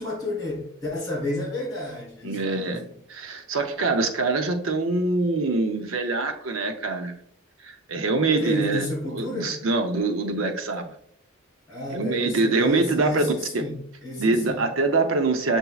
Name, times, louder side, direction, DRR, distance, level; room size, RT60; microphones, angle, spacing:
voice 1, 0.0-2.9 8.4-9.5 11.7-14.6, left 1 dB, 20° left, -5 dB, 1.6 m, -31 dB
voice 2, 2.2-2.8 3.1-7.1 7.6-8.9 9.1-10.9 11.9-13.3 14.2-15.6, right 3 dB, 70° right, 5 dB, 0.6 m, -24 dB
6.8 x 2.7 x 2.3 m, 0.67 s
head